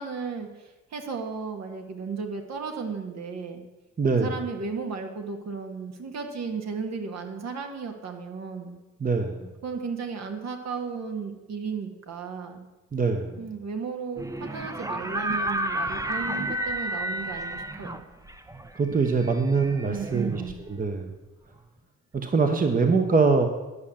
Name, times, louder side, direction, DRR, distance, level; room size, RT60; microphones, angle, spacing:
voice 1, 0.0-3.6 4.1-8.8 9.6-12.7 13.4-18.1 19.8-20.6, right 5 dB, 60° right, 4 dB, 1.8 m, -34 dB
voice 2, 4.0-4.3 9.0-9.5 12.9-13.4 18.7-20.4 20.7-21.1 22.1-23.5, right 4 dB, 30° right, 5 dB, 1.1 m, -23 dB
sound 1, 14.2-21.0, right 1 dB, 10° right, 0.8 m, -32 dB
11.0 x 6.4 x 7.2 m, 1.1 s
cardioid pair, 90°, 30 cm